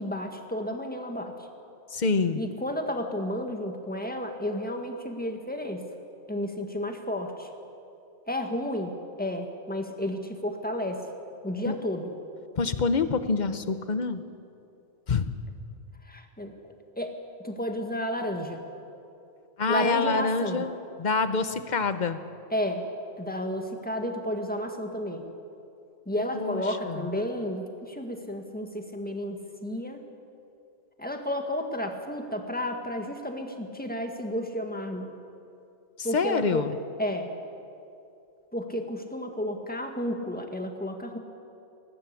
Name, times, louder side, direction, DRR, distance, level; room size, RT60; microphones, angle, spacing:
voice 1, 0.0-1.3 2.4-5.9 6.3-7.5 8.3-11.0 11.4-12.1 16.1-16.6 17.0-17.2 17.4-18.6 19.7-20.6 22.5-22.9 23.2-25.2 26.1-30.0 31.0-35.1 36.0-36.7 37.0-37.3 38.5-41.2, left 1 dB, 5° left, 4 dB, 1.8 m, -32 dB
voice 2, 1.9-2.4 11.7-11.8 12.6-14.2 15.1-15.3 19.6-20.7 21.0-22.2 26.3-27.0 36.0-36.7, left 4 dB, 40° left, 11 dB, 1.0 m, -26 dB
20.0 x 18.5 x 8.5 m, 2.6 s
omnidirectional pair, 1.3 m